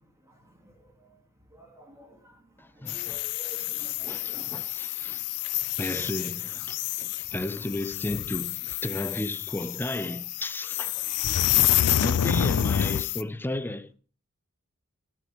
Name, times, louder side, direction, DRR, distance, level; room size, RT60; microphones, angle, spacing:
voice 1, 0.2-1.2 1.5-4.3 7.1-7.2 11.0-11.8 12.1-12.5, equal, 15° right, 2.3 m, -52 dB
voice 2, 2.6-3.2 3.8-5.2 5.8-11.0 12.0-13.9, left 1 dB, 10° left, 0.5 m, -34 dB
sound 1, 2.9-13.2, left 12 dB, 85° left, 0.4 m, -28 dB
14.5 x 7.0 x 4.9 m
head